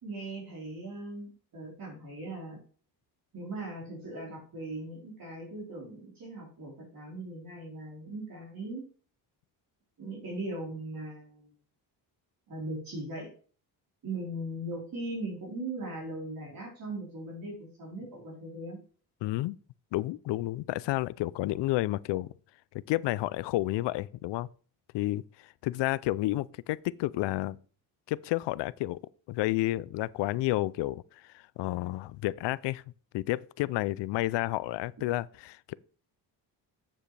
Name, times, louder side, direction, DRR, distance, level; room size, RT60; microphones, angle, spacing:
voice 1, 0.0-2.6 3.3-8.8 10.0-11.5 12.5-13.3 14.0-18.8, right 2 dB, 55° right, 4.1 m, -39 dB
voice 2, 19.2-19.6 19.9-22.3 22.7-24.5 24.9-27.6 28.1-29.0 29.3-32.8 33.1-35.7, left 17 dB, 80° left, 0.5 m, -31 dB
9.1 x 7.6 x 3.3 m
cardioid pair, 110°, 42 cm